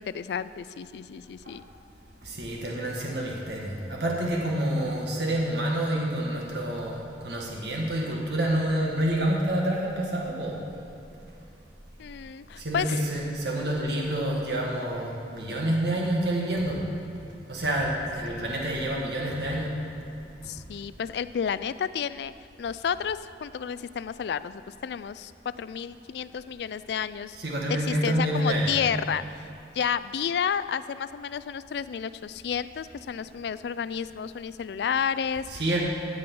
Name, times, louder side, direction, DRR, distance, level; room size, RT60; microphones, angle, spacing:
voice 1, 0.0-1.6 12.0-12.9 20.4-22.3 22.6-27.4 27.7-29.2 29.7-35.5, left 7 dB, 65° left, 15 dB, 0.3 m, -31 dB
voice 2, 2.2-10.5 12.6-16.9 17.5-19.7 27.4-28.8 35.5-35.8, right 1 dB, 65° right, -2 dB, 1.6 m, -28 dB
14.5 x 6.9 x 5.3 m, 2.8 s
head